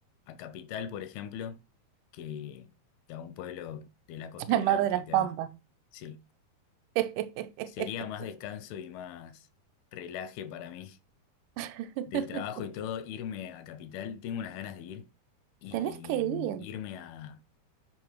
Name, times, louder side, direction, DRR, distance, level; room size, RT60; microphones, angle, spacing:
voice 1, 0.3-1.6 2.1-2.7 3.1-5.3 5.9-6.2 7.7-9.5 9.9-11.0 12.1-15.1 15.6-17.4, left 9 dB, 85° left, 2.5 m, -40 dB
voice 2, 4.5-5.5 7.0-7.9 11.6-12.4 15.7-16.7, right 12 dB, 80° right, 1.9 m, -29 dB
8.2 x 5.3 x 4.6 m
omnidirectional pair, 4.5 m